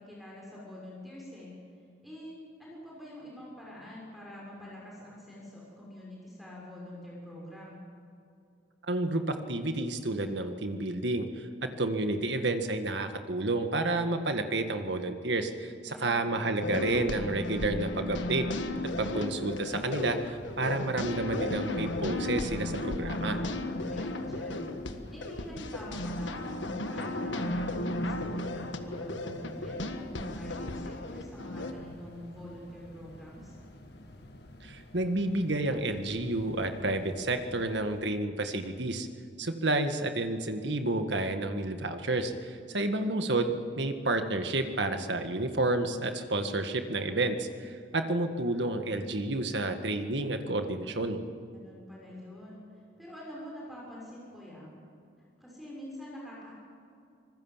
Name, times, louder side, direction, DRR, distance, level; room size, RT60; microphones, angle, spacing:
voice 1, 0.0-1.5 2.0-7.8 15.9-16.4 23.7-33.6 42.7-43.1 51.5-54.7 55.4-56.5, left 1 dB, ahead, -4 dB, 6.4 m, -46 dB
voice 2, 8.8-18.5 19.0-23.4 34.6-39.1 39.4-51.2, right 2 dB, 70° right, 7 dB, 1.8 m, -30 dB
sound 1, 16.6-31.7, left 1 dB, 85° left, 1.6 m, -34 dB
sound 2, 18.8-38.0, left 1 dB, 60° left, 2.1 m, -51 dB
25.0 x 20.5 x 7.4 m, 2.6 s
head